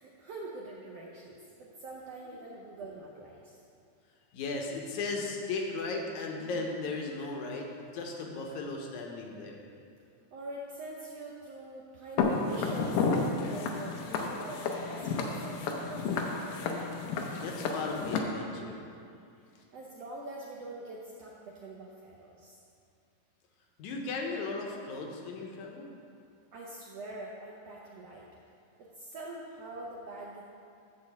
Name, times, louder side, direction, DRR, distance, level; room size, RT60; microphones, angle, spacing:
voice 1, 0.0-3.6 10.3-16.7 19.7-22.6 26.5-28.3 28.8-30.4, right 2 dB, 70° right, -3 dB, 1.5 m, -44 dB
voice 2, 4.3-7.7 7.9-9.6 17.4-18.9 23.8-25.9, left 3 dB, 70° left, 1 dB, 2.3 m, -36 dB
Walk footsteps, 12.2-18.2, left 4 dB, 90° left, 2.5 m, -31 dB
11.5 x 4.4 x 7.2 m, 2.4 s
omnidirectional pair, 3.9 m